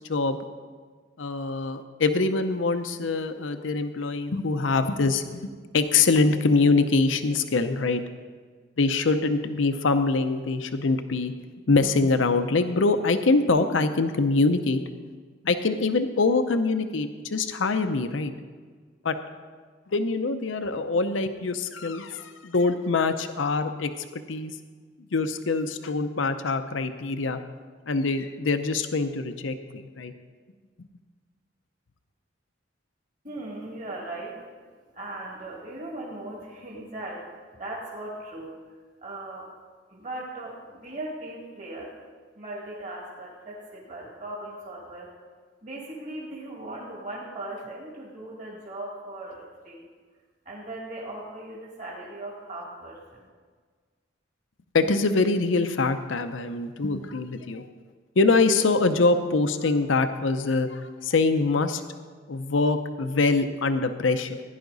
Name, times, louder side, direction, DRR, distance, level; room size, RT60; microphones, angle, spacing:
voice 1, 1.2-8.0 8.8-11.3 11.7-14.8 15.4-18.3 19.0-19.2 19.9-24.6 25.1-27.4 27.9-30.1 54.7-57.7 58.2-61.8 62.3-64.4, left 3 dB, 90° left, 9 dB, 0.7 m, -24 dB
voice 2, 33.2-34.4 34.9-37.3 37.5-38.5 39.0-39.5 39.9-42.0 42.4-45.1 45.6-49.9 50.5-53.3, right 1 dB, 45° right, -4 dB, 2.1 m, -38 dB
16.0 x 10.5 x 4.0 m, 1.5 s
head